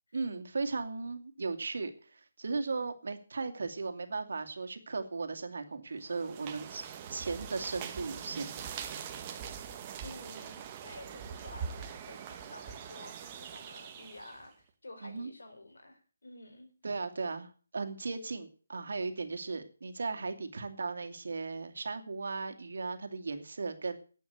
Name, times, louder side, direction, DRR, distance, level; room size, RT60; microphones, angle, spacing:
voice 1, 0.1-6.8 7.1-8.5 15.0-15.3 16.8-24.0, right 4 dB, 65° right, 7 dB, 2.4 m, -36 dB
sound 1, 6.1-14.5, right 7 dB, 25° right, 1.5 m, -43 dB
voice 2, 10.0-16.7, left 2 dB, 80° left, 6 dB, 4.6 m, -51 dB
12.5 x 8.4 x 8.1 m, 0.41 s
figure-of-eight pair, 160°, 0 cm